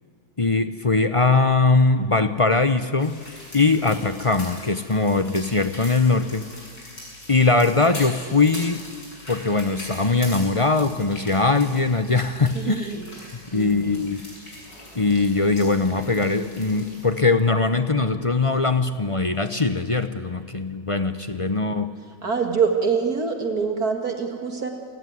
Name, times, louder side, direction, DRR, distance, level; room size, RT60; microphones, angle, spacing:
voice 1, 0.4-3.2 3.5-6.5 7.3-8.8 9.3-12.9 13.5-14.2 14.9-21.9, left 3 dB, 30° left, 10 dB, 0.6 m, -21 dB
sound 1, 3.0-17.1, left 1 dB, 75° left, 7.9 m, -41 dB
voice 2, 12.5-14.0 22.2-24.7, right 5 dB, 55° right, 4 dB, 2.5 m, -25 dB
29.0 x 19.0 x 9.6 m, 2.1 s
omnidirectional pair, 1.9 m